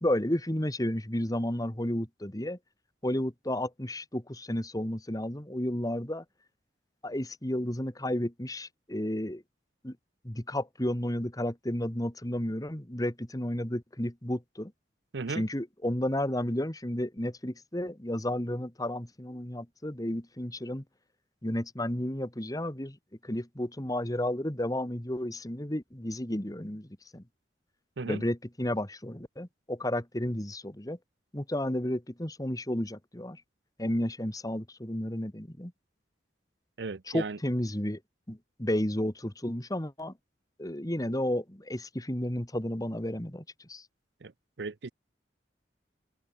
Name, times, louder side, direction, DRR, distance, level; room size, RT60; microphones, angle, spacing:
voice 1, 0.0-2.6 3.0-6.2 7.0-9.4 9.8-10.0 10.2-14.7 15.3-20.8 21.4-23.0 23.2-27.2 28.1-31.0 31.3-33.4 33.8-35.7 37.1-38.0 38.3-40.1 40.6-43.8, left 1 dB, 20° left, 1.9 m, -32 dB
voice 2, 15.1-15.5 28.0-28.2 36.8-37.4 44.2-44.3 44.6-44.9, right 4 dB, 65° right, 0.7 m, -36 dB
head